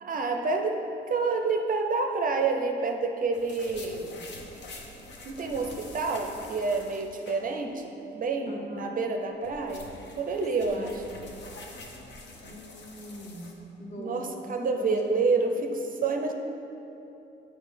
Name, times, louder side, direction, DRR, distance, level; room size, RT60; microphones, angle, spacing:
voice 1, 0.0-0.7 1.0-4.2 5.2-10.9 14.0-16.3, right 4 dB, 45° right, 4 dB, 0.5 m, -28 dB
sound 1, 3.3-7.8 8.1-8.2 9.1-13.5, left 2 dB, 65° left, 0.9 m, -46 dB
voice 2, 8.5-9.0 10.6-11.0 12.4-13.5 13.8-15.2, left 1 dB, 35° left, -2 dB, 1.2 m, -42 dB
8.1 x 4.6 x 3.3 m, 2.9 s
cardioid pair, 90°, 20 cm